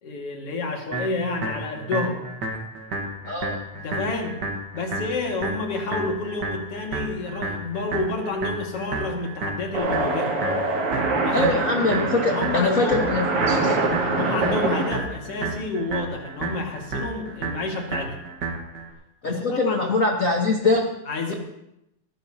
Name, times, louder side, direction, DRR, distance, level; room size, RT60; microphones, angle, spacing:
voice 1, 0.0-2.2 3.7-4.4 4.7-10.3 11.2-12.0 12.3-13.1 14.1-18.2 19.2-19.9 21.1-21.3, left 3 dB, 50° left, 1 dB, 2.8 m, -29 dB
sound 1, 0.9-18.9, right 3 dB, 45° right, 1.6 m, -32 dB
voice 2, 3.3-3.6 11.3-13.8 19.2-20.9, left 3 dB, 80° left, 1 dB, 0.7 m, -23 dB
sound 2, 9.7-14.9, right 2 dB, 70° right, 3.6 m, -24 dB
20.0 x 15.0 x 2.8 m, 0.84 s
omnidirectional pair, 3.5 m